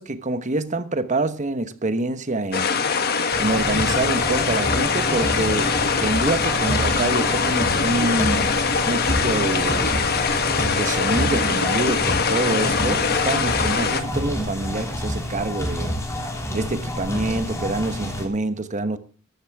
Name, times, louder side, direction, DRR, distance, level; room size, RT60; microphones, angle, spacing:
voice 1, 0.0-2.8 3.4-5.7 6.0-9.9 10.7-15.9 16.5-19.0, right 2 dB, 35° right, 1.1 m, -26 dB
sound 1, 2.5-14.0, left 5 dB, 50° left, 1.4 m, -22 dB
sound 2, 3.3-18.3, equal, 15° left, 2.8 m, -28 dB
13.5 x 12.5 x 3.6 m
head